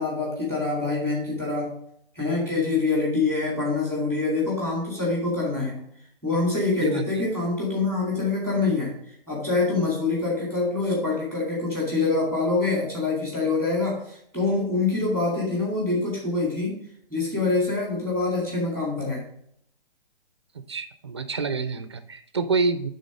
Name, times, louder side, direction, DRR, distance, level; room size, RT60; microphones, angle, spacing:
voice 1, 0.0-1.8 2.2-5.9 6.2-8.9 9.3-16.8 17.1-19.2, left 3 dB, 10° left, -4 dB, 2.2 m, -25 dB
voice 2, 20.7-22.9, right 4 dB, 30° right, 11 dB, 0.4 m, -27 dB
9.4 x 3.9 x 5.2 m, 0.67 s
hypercardioid pair, 170°, 29 cm